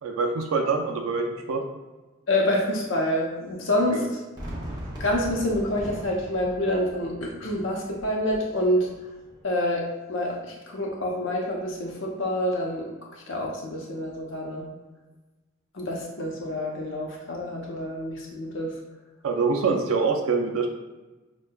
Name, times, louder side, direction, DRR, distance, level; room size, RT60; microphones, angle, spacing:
voice 1, 0.0-1.6 3.9-4.1 19.2-20.7, right 4 dB, 90° right, 2 dB, 0.5 m, -25 dB
voice 2, 2.3-4.0 5.0-8.9 9.4-12.9 13.1-14.7 15.7-18.7, left 1 dB, 65° left, -1 dB, 0.7 m, -27 dB
Fireworks, 4.4-9.4, equal, 20° right, 0.7 m, -40 dB
6.2 x 2.2 x 2.2 m, 1.2 s
head